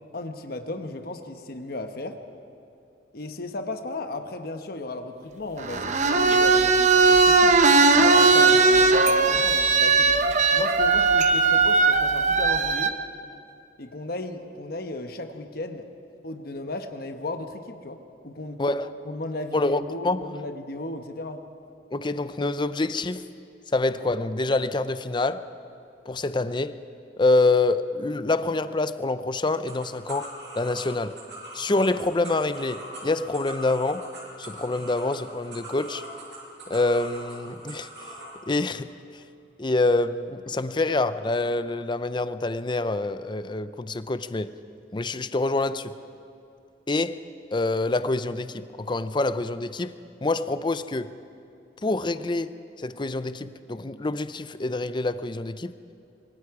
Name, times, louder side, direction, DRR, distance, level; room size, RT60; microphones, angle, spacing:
voice 1, 0.1-2.2 3.1-7.6 7.9-10.2 10.5-13.0 13.8-15.8 16.2-18.0 18.2-18.6 19.0-21.4, left 2 dB, 60° left, 6 dB, 1.1 m, -35 dB
sound 1, 5.6-12.9, right 4 dB, 45° right, 0.9 m, -18 dB
voice 2, 18.6-18.9 19.5-20.2 21.9-23.2 23.7-25.5 26.1-26.8 27.2-31.1 31.5-34.1 34.4-36.0 36.7-37.9 38.5-38.9 39.6-44.5 44.9-45.9 46.9-47.2 47.5-49.9 50.2-51.1 51.8-52.6 52.8-55.7, left 2 dB, 25° left, 13 dB, 0.6 m, -26 dB
sound 2, 29.7-38.3, right 1 dB, 75° right, 6.6 m, -41 dB
25.5 x 23.0 x 4.8 m, 2.6 s
head